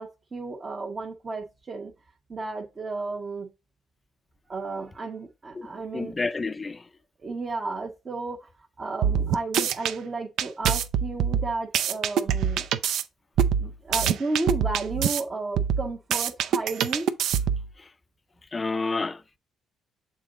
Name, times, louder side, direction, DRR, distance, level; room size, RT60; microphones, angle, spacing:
voice 1, 0.0-1.9 2.3-3.5 4.5-6.1 7.2-8.5 8.8-12.7 13.6-17.1, right 3 dB, 35° right, 1.1 m, -33 dB
voice 2, 5.9-6.8 18.5-19.4, left 3 dB, 25° left, 0.4 m, -29 dB
sound 1, 9.0-9.9 10.4-13.0 13.4-15.2 15.6-17.7, right 8 dB, 80° right, 0.5 m, -25 dB
6.8 x 3.9 x 3.7 m
cardioid pair, 90°, 0 cm